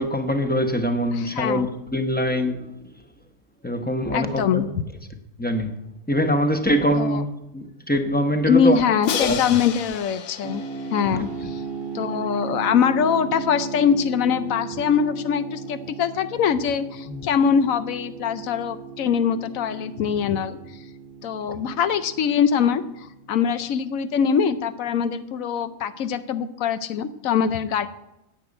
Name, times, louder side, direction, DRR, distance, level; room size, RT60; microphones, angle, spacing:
voice 1, 0.0-1.7 1.9-2.6 3.6-4.6 5.4-5.7 6.1-7.3 7.5-8.8 9.2-9.4 17.1-17.2, equal, 10° left, 0.9 m, -23 dB
voice 2, 1.1-1.7 4.1-4.7 6.9-7.2 8.5-10.6 10.9-11.6 11.9-20.6 21.2-27.9, left 7 dB, 90° left, 1.1 m, -23 dB
Crash cymbal, 9.0-12.0, left 7 dB, 70° left, 1.0 m, -31 dB
sound 1, 10.4-25.2, right 5 dB, 50° right, 1.0 m, -37 dB
10.5 x 7.0 x 8.7 m
omnidirectional pair, 1.4 m